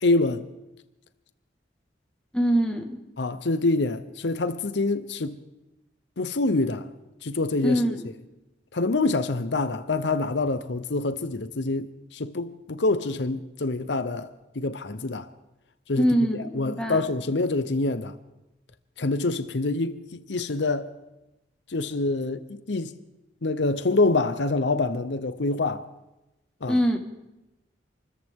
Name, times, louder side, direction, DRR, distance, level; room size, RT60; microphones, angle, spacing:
voice 1, 0.0-0.4 3.2-5.4 6.2-6.9 7.2-8.0 8.7-14.3 14.6-15.3 15.9-18.1 19.0-20.9 21.7-22.9 23.4-25.9 26.6-26.8, left 2 dB, 80° left, 0.8 m, -26 dB
voice 2, 2.3-3.0 7.6-8.1 16.0-17.0 26.7-27.0, equal, 5° left, 1.6 m, -23 dB
27.5 x 14.5 x 3.7 m
head